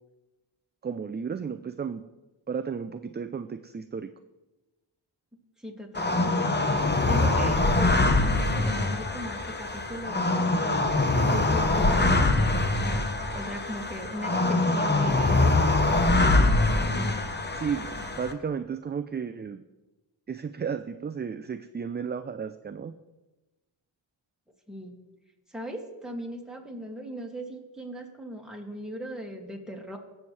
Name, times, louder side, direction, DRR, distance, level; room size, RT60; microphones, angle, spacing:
voice 1, 0.8-2.0 2.5-4.1 17.5-19.6 20.3-22.9, right 6 dB, 25° right, 9 dB, 0.3 m, -33 dB
voice 2, 5.6-12.6 13.3-16.1 24.7-25.0 25.5-30.0, equal, ahead, 0 dB, 2.2 m, -38 dB
sound 1, 5.9-18.3, left 2 dB, 20° left, 1.0 m, -24 dB
17.5 x 7.0 x 3.3 m, 1.1 s
cardioid pair, 55°, 49 cm